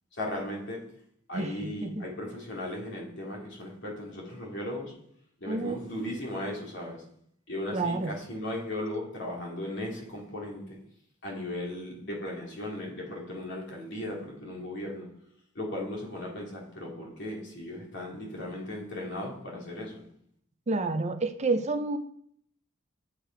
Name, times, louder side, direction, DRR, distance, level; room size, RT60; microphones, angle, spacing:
voice 1, 0.1-1.0 1.3-5.1 5.4-7.1 7.5-10.8 11.2-15.2 15.5-20.1, left 1 dB, 60° left, 2.8 m, -37 dB
voice 2, 1.3-2.0 5.5-5.8 7.7-8.1 20.7-22.0, right 3 dB, 35° right, 0.6 m, -29 dB
8.4 x 6.6 x 4.6 m
head